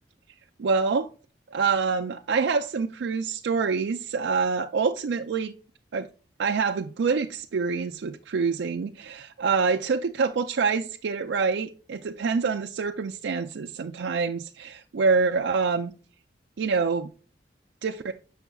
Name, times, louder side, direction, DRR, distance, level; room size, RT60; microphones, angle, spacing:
voice 1, 0.6-1.1 1.5-5.5 5.9-6.1 6.4-15.9 16.6-17.1 17.8-18.1, right 5 dB, 80° right, 0.4 m, -26 dB
6.9 x 6.3 x 2.3 m
head